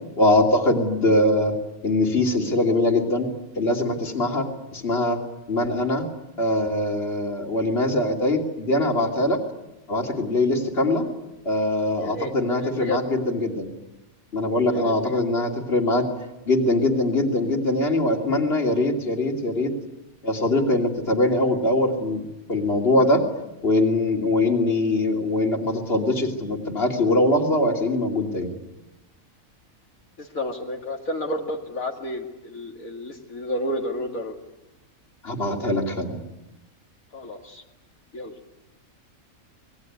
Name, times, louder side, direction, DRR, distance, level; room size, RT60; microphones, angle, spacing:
voice 1, 0.2-1.5 1.8-3.3 3.6-4.5 4.7-5.2 5.5-6.1 6.4-9.4 9.9-11.0 11.4-13.7 14.3-16.1 16.4-19.7 20.2-23.2 23.6-28.5 35.2-36.2, left 1 dB, 45° left, 2 dB, 3.2 m, -22 dB
voice 2, 12.0-13.0 14.7-15.2 30.2-34.4 37.1-37.6 38.1-38.3, left 1 dB, 70° left, 0 dB, 2.6 m, -31 dB
26.5 x 21.0 x 9.5 m, 0.98 s
omnidirectional pair, 1.5 m